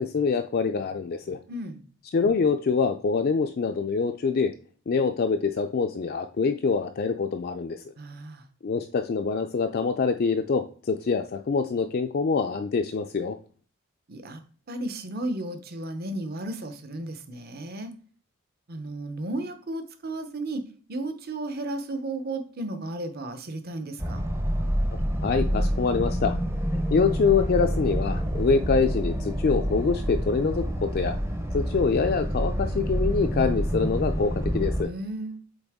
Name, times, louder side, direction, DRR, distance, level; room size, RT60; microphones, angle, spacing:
voice 1, 0.0-1.4 2.1-4.5 4.9-7.8 8.6-13.4 25.2-26.4 26.7-31.2 31.5-34.9, left 5 dB, 45° left, 6 dB, 0.3 m, -25 dB
voice 2, 1.5-1.8 8.0-8.4 14.1-14.4 14.7-17.9 18.7-20.6 20.9-24.2 34.8-35.4, right 2 dB, 45° right, 8 dB, 0.7 m, -34 dB
sound 1, 24.0-34.8, equal, 10° right, 0.6 m, -27 dB
8.0 x 3.4 x 3.5 m, 0.42 s
head